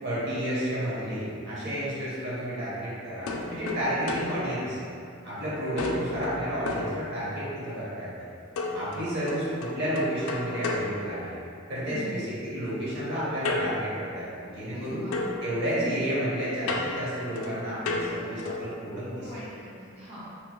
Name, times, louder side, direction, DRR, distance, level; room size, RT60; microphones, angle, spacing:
voice 1, 0.0-4.8 5.2-8.1 8.7-11.3 11.7-15.0 15.4-19.3, equal, 55° right, -9 dB, 1.0 m, -31 dB
voice 2, 1.6-1.9 11.8-12.1 14.7-15.2 15.7-16.0 19.2-20.3, equal, 30° right, -12 dB, 0.5 m, -42 dB
sound 1, 3.3-5.4 5.8-7.6 8.6-11.8 13.4-14.8 15.1-18.8, left 2 dB, 70° left, 0.3 m, -34 dB
3.0 x 2.2 x 2.9 m, 2.5 s
head